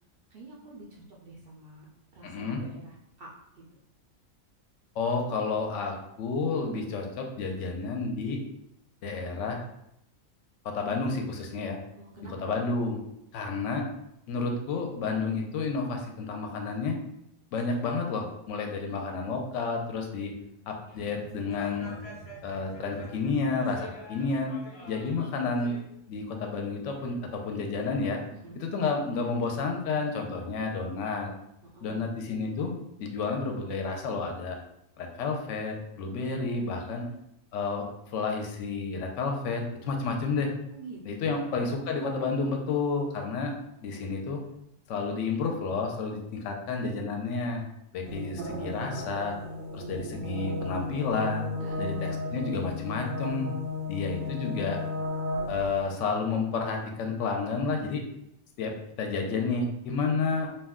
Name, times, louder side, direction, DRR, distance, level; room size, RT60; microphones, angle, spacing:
voice 1, 0.3-1.9 2.1-3.6 12.0-12.6 28.3-28.6 31.6-32.1 36.6-37.2 40.7-41.4 51.6-51.9 54.0-54.9, right 3 dB, 65° right, -4 dB, 0.6 m, -48 dB
voice 2, 2.2-2.6 5.0-8.4 9.0-9.6 10.6-11.8 12.4-13.0 13.3-13.8 14.3-17.0 17.5-20.3 20.7-21.9 22.4-24.5 24.9-25.8 26.1-28.2 28.6-31.3 31.8-32.7 33.0-34.6 35.0-37.0 37.5-40.5 41.0-43.5 43.8-44.4 44.9-47.6 47.9-49.4 49.7-51.4 51.8-53.5 53.9-54.8 55.5-58.0 58.6-60.5, left 4 dB, 70° left, 2 dB, 0.8 m, -30 dB
sound 1, 20.9-25.8, equal, 35° left, 0.6 m, -46 dB
sound 2, 48.1-55.8, left 2 dB, 90° right, 1.1 m, -34 dB
2.5 x 2.2 x 3.5 m, 0.80 s
omnidirectional pair, 1.4 m